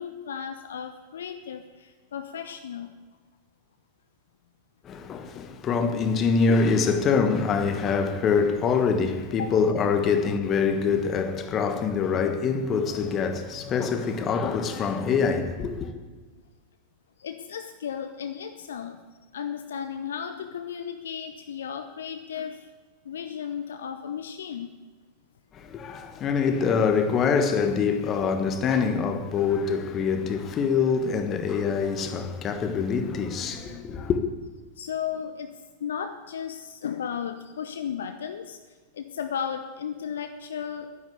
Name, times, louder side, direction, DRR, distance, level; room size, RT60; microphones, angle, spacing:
voice 1, 0.0-2.9 9.4-9.5 17.2-19.0 19.3-22.7 23.0-24.7 34.8-40.9, left 8 dB, 65° left, 0.8 m, -35 dB
voice 2, 4.8-15.9 25.5-34.2, left 5 dB, 30° left, 1.4 m, -25 dB
11.0 x 10.5 x 8.3 m
figure-of-eight pair, 90°, 0 cm